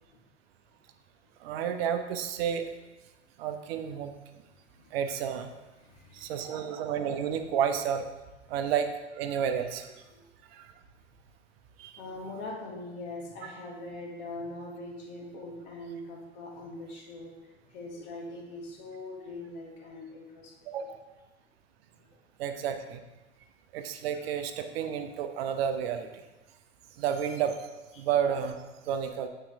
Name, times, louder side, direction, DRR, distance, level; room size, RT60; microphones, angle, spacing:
voice 1, 1.4-2.7 3.4-4.1 4.9-5.5 6.1-8.1 8.5-9.9 10.5-10.7 11.8-11.9 13.4-13.5 20.7-21.0 22.4-23.0 23.7-26.2 27.0-27.6 28.0-29.3, right 8 dB, 60° right, 7 dB, 0.7 m, -31 dB
voice 2, 4.7-5.0 5.8-6.6 10.1-10.2 12.0-17.3 17.6-20.5 22.1-22.2 27.9-28.1, left 2 dB, 50° left, -2 dB, 1.8 m, -42 dB
8.7 x 3.7 x 3.5 m, 1.1 s
figure-of-eight pair, 80°, 35 cm